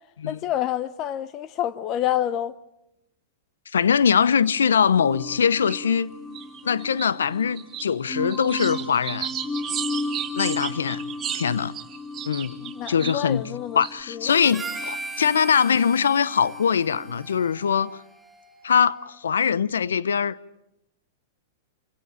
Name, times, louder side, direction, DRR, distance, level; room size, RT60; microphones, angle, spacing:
voice 1, 0.3-2.5 12.5-13.8 14.1-14.3 15.2-15.3, left 12 dB, 40° left, 0.9 m, -28 dB
voice 2, 3.7-6.1 6.6-9.3 10.4-11.0 11.3-11.7 12.2-12.5 12.9-13.4 13.7-17.9 18.6-20.4, left 7 dB, 85° left, 0.8 m, -22 dB
sound 1, 4.7-4.8 5.7-6.0 6.4-7.1 7.4-13.2 13.8-13.9, right 9 dB, 30° right, 2.9 m, -34 dB
sound 2, 5.0-17.2, left 2 dB, 20° left, 2.7 m, -36 dB
Harmonica, 14.3-18.8, right 3 dB, 10° right, 7.9 m, -38 dB
28.0 x 17.0 x 8.9 m
hypercardioid pair, 110°, 0 cm